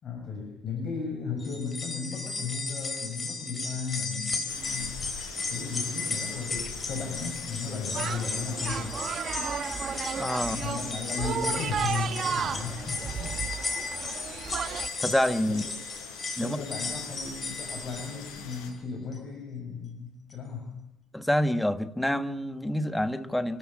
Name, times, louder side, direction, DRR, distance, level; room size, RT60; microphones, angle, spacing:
voice 1, 0.0-5.0 5.4-9.0 10.4-13.4 15.5-15.6 16.4-20.8, left 5 dB, 45° left, 6.9 m, -35 dB
sound 1, 1.4-18.7 19.1-19.2 20.3-20.4, left 3 dB, 25° left, 4.2 m, -35 dB
sound 2, 4.5-18.7, left 6 dB, 90° left, 5.7 m, -45 dB
sound 3, 7.9-14.9, right 7 dB, 40° right, 1.4 m, -33 dB
voice 2, 10.2-10.6 15.0-15.6 16.4-16.6 21.1-23.6, left 1 dB, 5° left, 1.3 m, -27 dB
28.0 x 13.5 x 8.6 m
cardioid pair, 120°, 0 cm